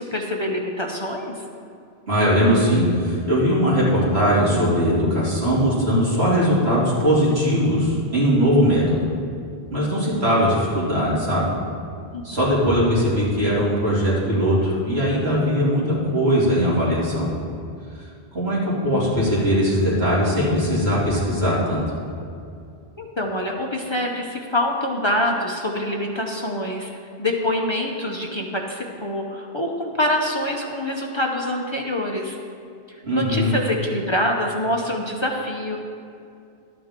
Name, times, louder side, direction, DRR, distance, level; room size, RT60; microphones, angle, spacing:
voice 1, 0.0-1.4 12.1-12.2 23.0-26.9 27.2-32.4 33.1-35.8, left 1 dB, 30° left, 0 dB, 0.8 m, -25 dB
voice 2, 2.1-9.0 9.7-11.5 12.2-15.8 16.1-17.3 18.3-21.8 33.0-33.5, equal, 80° right, -8 dB, 3.1 m, -20 dB
12.5 x 9.5 x 3.7 m, 2.5 s
omnidirectional pair, 1.1 m